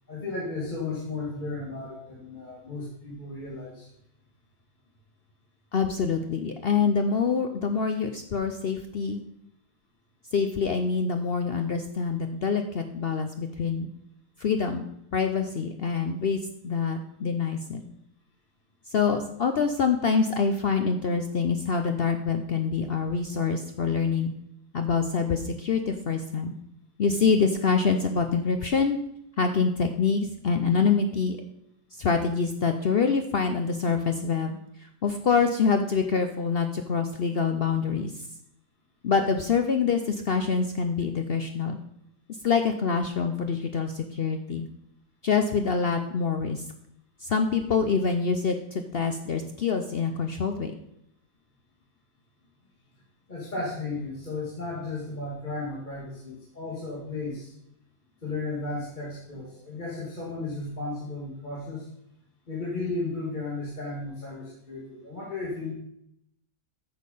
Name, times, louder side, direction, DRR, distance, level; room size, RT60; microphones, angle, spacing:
voice 1, 0.1-3.9 53.3-57.5 58.2-61.9 62.5-65.7, left 3 dB, 25° left, -5 dB, 2.1 m, -34 dB
voice 2, 5.7-9.2 10.3-13.9 14.4-16.4 16.6-17.8 18.9-24.3 24.7-26.5 27.0-29.0 29.4-31.4 32.0-38.2 39.0-41.8 42.4-44.7 45.2-46.6 47.2-50.7, left 5 dB, 80° left, 6 dB, 0.5 m, -26 dB
9.3 x 6.5 x 5.4 m, 0.76 s
omnidirectional pair, 1.9 m